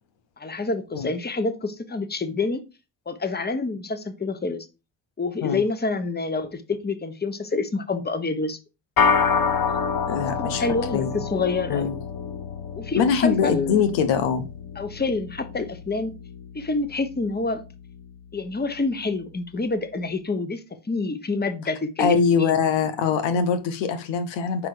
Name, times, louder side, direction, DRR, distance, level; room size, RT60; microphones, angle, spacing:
voice 1, 0.4-2.6 3.1-4.7 5.2-8.6 10.5-11.9 12.8-13.8 14.8-16.1 16.5-17.6 18.3-22.5, left 3 dB, 20° left, 1.2 m, -27 dB
sound 1, 9.0-18.5, left 6 dB, 55° left, 1.1 m, -28 dB
voice 2, 10.1-10.6 10.9-11.1 11.7-11.9 13.0-14.5 22.0-24.7, left 6 dB, 90° left, 1.1 m, -22 dB
5.3 x 4.9 x 4.8 m
supercardioid pair, 60°, 43 cm